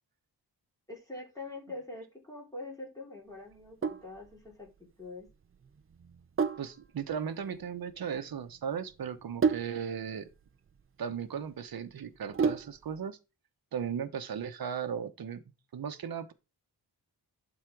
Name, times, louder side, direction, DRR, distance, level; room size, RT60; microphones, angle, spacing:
voice 1, 0.9-4.7 5.0-5.3, left 2 dB, 10° left, 3.2 m, -44 dB
Sink (filling or washing), 3.5-13.0, right 6 dB, 30° right, 0.6 m, -35 dB
voice 2, 6.6-10.3 11.0-13.2 13.7-15.4 15.7-16.3, right 7 dB, 60° right, 1.1 m, -36 dB
11.5 x 4.1 x 4.7 m
wide cardioid pair, 165°, 40 cm